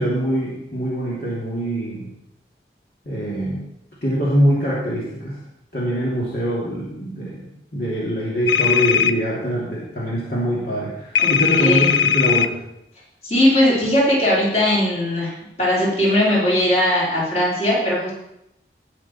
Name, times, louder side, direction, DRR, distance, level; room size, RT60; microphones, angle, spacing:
voice 1, 0.0-2.1 3.1-3.6 4.0-5.4 5.7-12.6, equal, 55° left, -7 dB, 2.9 m, -23 dB
sound 1, 8.5-9.1 11.2-12.5, left 8 dB, 85° left, 0.5 m, -18 dB
voice 2, 11.2-11.9 13.2-15.3 15.6-18.1, left 1 dB, 35° left, -6 dB, 4.1 m, -19 dB
18.0 x 6.5 x 4.4 m, 0.82 s
head